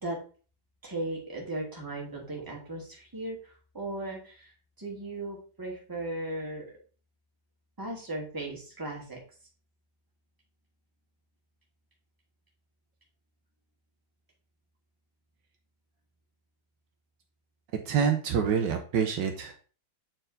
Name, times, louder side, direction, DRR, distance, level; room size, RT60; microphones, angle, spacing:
voice 1, 0.8-4.5 4.8-6.6 7.8-9.2, right 2 dB, 10° right, -2 dB, 2.0 m, -37 dB
voice 2, 17.9-19.6, right 7 dB, 70° right, 5 dB, 1.4 m, -26 dB
7.6 x 4.5 x 3.9 m, 0.39 s
omnidirectional pair, 2.1 m